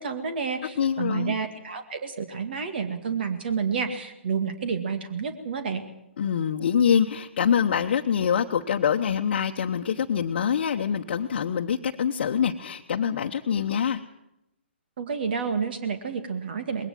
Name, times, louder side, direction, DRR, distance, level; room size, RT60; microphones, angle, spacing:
voice 1, 0.0-5.8 15.0-16.9, right 6 dB, 55° right, 9 dB, 2.2 m, -30 dB
voice 2, 0.8-1.3 6.2-14.0, left 8 dB, 55° left, 2 dB, 1.1 m, -25 dB
20.5 x 18.0 x 7.6 m, 0.86 s
figure-of-eight pair, 135°, 7 cm